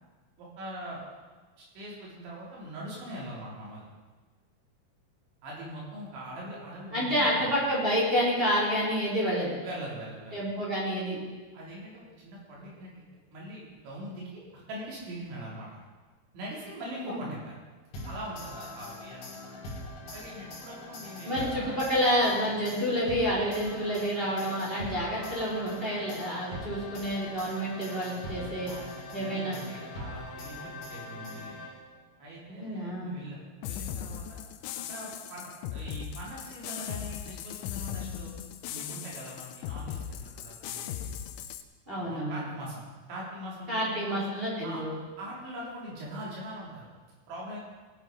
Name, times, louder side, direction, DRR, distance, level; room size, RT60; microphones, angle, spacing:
voice 1, 0.4-1.0 1.8-3.9 5.4-7.6 9.6-10.4 11.5-12.9 13.3-15.7 16.3-17.6 18.1-19.5 20.1-21.8 28.0-28.9 29.2-31.6 32.2-34.4 34.9-38.3 38.7-41.2 41.9-42.8 43.1-44.2 44.6-44.8 45.2-46.9 47.3-47.6, right 1 dB, 65° right, -5 dB, 5.7 m, -42 dB
voice 2, 6.9-9.6 10.3-11.2 16.9-17.3 21.2-28.7 29.1-29.6 32.5-33.2 41.9-42.4 43.7-45.0, equal, 15° right, -6 dB, 3.2 m, -29 dB
sound 1, 17.9-32.1, left 1 dB, 45° left, 2.9 m, -42 dB
sound 2, 33.6-41.6, left 9 dB, 85° left, 2.6 m, -38 dB
18.5 x 8.8 x 5.2 m, 1.4 s
omnidirectional pair, 5.9 m